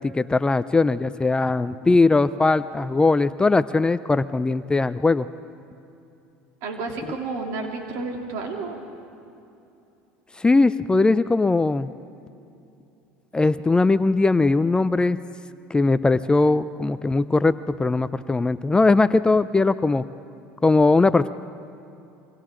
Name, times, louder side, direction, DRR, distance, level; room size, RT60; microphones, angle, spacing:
voice 1, 0.0-5.3 10.4-11.9 13.3-15.2 15.7-20.0 20.6-21.3, left 3 dB, 15° left, 14 dB, 0.5 m, -20 dB
voice 2, 6.6-8.8, right 3 dB, 65° right, 1 dB, 3.3 m, -31 dB
29.5 x 24.5 x 3.9 m, 2.7 s
supercardioid pair, 90°, 6 cm